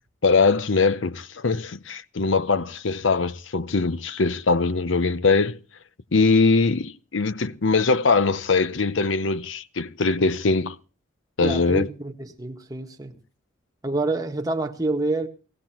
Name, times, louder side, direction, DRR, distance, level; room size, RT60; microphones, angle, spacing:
voice 1, 0.2-5.6 6.1-10.8 11.4-11.9, left 4 dB, 80° left, 0.8 m, -22 dB
voice 2, 11.4-13.2 13.8-15.3, right 2 dB, 20° right, 1.4 m, -27 dB
20.0 x 16.0 x 2.9 m
head